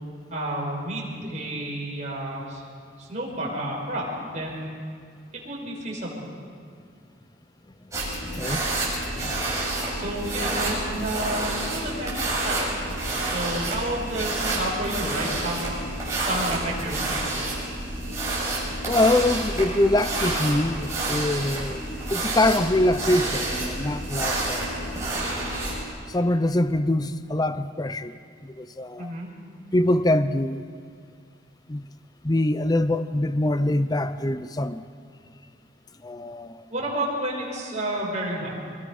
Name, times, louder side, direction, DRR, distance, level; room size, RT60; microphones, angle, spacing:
voice 1, 0.3-2.6 3.0-4.8 5.4-6.3 9.9-11.4 11.7-15.7 16.2-17.1 29.0-29.3 36.7-38.5, right 1 dB, 40° right, -4 dB, 5.6 m, -31 dB
sound 1, 7.9-25.8, right 2 dB, 15° right, 6.6 m, -29 dB
voice 2, 8.2-8.9 9.1-9.7 18.9-21.8 22.1-24.9 26.1-28.1 28.4-29.1 29.7-30.6 31.7-31.8 32.2-34.8 36.0-36.6, left 1 dB, 20° left, 12 dB, 0.6 m, -24 dB
24.5 x 22.0 x 5.5 m, 2.2 s
head